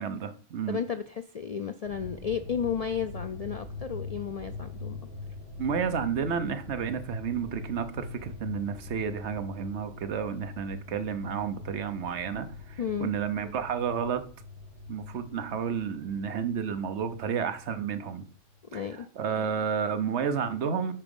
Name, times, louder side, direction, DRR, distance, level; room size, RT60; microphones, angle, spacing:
voice 1, 0.0-0.8 5.6-14.2 14.9-18.3 18.7-20.9, right 7 dB, 65° right, 1.1 m, -31 dB
voice 2, 0.7-5.0 12.8-13.1 18.7-19.1, left 7 dB, 75° left, 0.3 m, -33 dB
sound 1, 1.8-18.6, left 3 dB, 50° right, 4.9 m, -43 dB
9.1 x 4.9 x 5.3 m
omnidirectional pair, 1.3 m